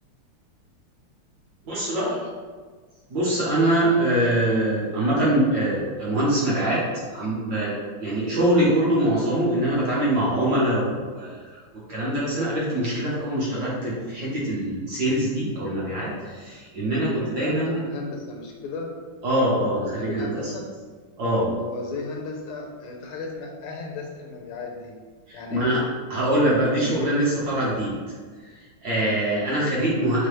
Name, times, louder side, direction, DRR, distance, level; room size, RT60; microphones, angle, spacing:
voice 1, 1.6-2.2 3.1-6.8 7.1-11.5 11.9-17.8 19.2-20.5 21.2-21.5 25.3-25.8 26.1-27.9 28.8-30.3, right 1 dB, 55° right, -7 dB, 1.4 m, -23 dB
voice 2, 17.0-18.9 20.0-20.7 21.6-24.9 25.3-25.7, left 3 dB, 85° left, 1 dB, 1.5 m, -35 dB
4.7 x 2.2 x 3.2 m, 1.5 s
omnidirectional pair, 2.3 m